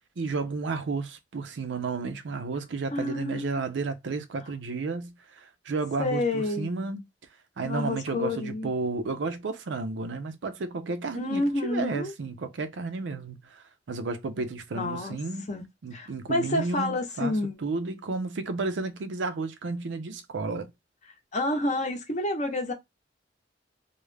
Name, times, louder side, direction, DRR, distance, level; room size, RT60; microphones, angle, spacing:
voice 1, 0.2-7.0 7.6-15.5 15.8-17.3 17.6-20.7, right 3 dB, 80° right, 0.5 m, -32 dB
voice 2, 2.9-3.5 6.0-6.8 7.6-8.7 11.1-12.1 14.7-15.2 15.5-15.6 15.9-17.6 21.3-22.7, left 2 dB, 40° left, 0.7 m, -29 dB
2.3 x 2.0 x 3.2 m
head